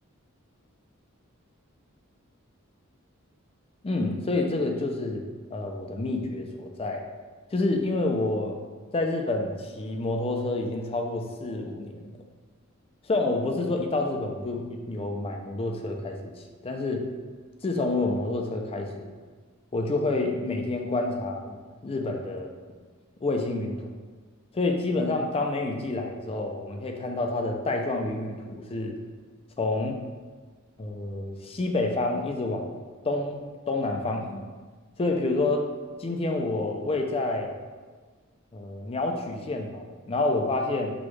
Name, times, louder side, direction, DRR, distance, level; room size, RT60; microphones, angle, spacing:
voice 1, 3.8-5.2 5.5-7.0 7.5-8.6 8.9-12.1 13.1-16.3 16.6-17.0 17.6-19.1 19.7-21.6 21.8-22.5 23.2-23.8 24.5-29.0 29.6-30.0 30.8-32.7 33.0-34.5 35.0-35.7 36.0-37.6 38.5-40.9, left 2 dB, 25° left, 3 dB, 0.4 m, -28 dB
6.1 x 2.3 x 3.1 m, 1.5 s
head